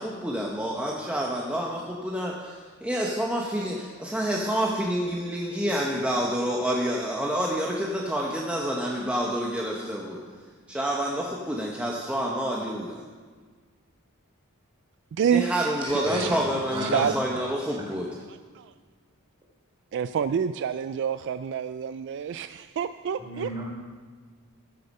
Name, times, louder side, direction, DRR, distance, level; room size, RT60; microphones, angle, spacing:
voice 1, 0.0-10.2 10.7-13.0 15.3-18.1, equal, 5° right, -2 dB, 1.0 m, -28 dB
voice 2, 15.8-16.4 16.7-17.1 23.2-23.6, equal, 25° right, -4 dB, 3.2 m, -33 dB
voice 3, 16.8-17.1 18.6-18.7 19.9-23.5, right 8 dB, 55° right, 12 dB, 0.3 m, -27 dB
14.0 x 7.7 x 5.4 m, 1.5 s
head